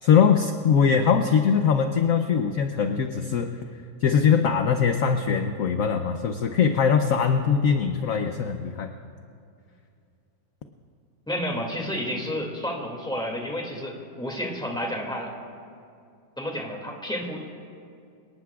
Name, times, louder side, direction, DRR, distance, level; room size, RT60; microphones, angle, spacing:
voice 1, 0.0-3.5 4.0-8.9, left 6 dB, 60° left, 6 dB, 0.9 m, -21 dB
voice 2, 11.3-15.3 16.4-17.4, equal, ahead, 0 dB, 2.1 m, -31 dB
27.0 x 18.5 x 2.4 m, 2.5 s
omnidirectional pair, 2.1 m